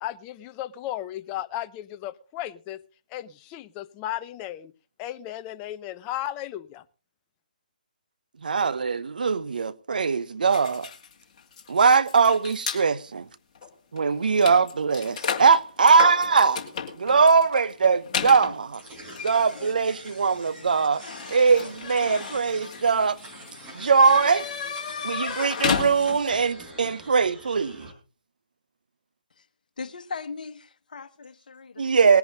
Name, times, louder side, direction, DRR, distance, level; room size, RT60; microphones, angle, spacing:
voice 1, 0.0-2.8 3.1-4.7 5.0-6.8, left 13 dB, 20° left, 0.7 m, -35 dB
voice 2, 8.4-10.9 11.7-13.3 13.9-16.6 17.0-18.8 19.2-21.0 21.3-23.2 23.7-24.5 25.0-27.9 31.8-32.2, right 5 dB, 65° right, 0.9 m, -21 dB
sound 1, 10.5-12.8 13.6-13.7 14.0-26.4, left 6 dB, 40° left, 2.4 m, -33 dB
sound 2, 18.7-27.9, right 1 dB, 15° right, 5.2 m, -45 dB
voice 3, 29.8-31.9, left 4 dB, 60° left, 1.5 m, -38 dB
20.0 x 10.5 x 3.8 m
figure-of-eight pair, 145°, 5 cm